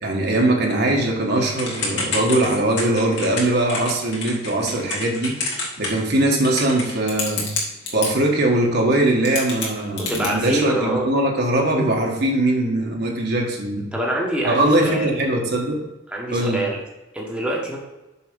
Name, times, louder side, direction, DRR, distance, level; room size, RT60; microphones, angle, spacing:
voice 1, 0.0-5.4 5.8-7.5 7.9-13.9 14.4-15.8 16.3-16.6, right 1 dB, 55° right, 0 dB, 1.6 m, -21 dB
Typing / Telephone, 1.6-8.1 8.9-9.0 9.2-10.3, left 3 dB, 60° left, 2.4 m, -28 dB
voice 2, 10.0-11.2 13.9-15.1 16.1-16.8 17.1-17.8, right 1 dB, 5° right, -3 dB, 1.4 m, -25 dB
7.0 x 5.8 x 5.2 m, 1.0 s
head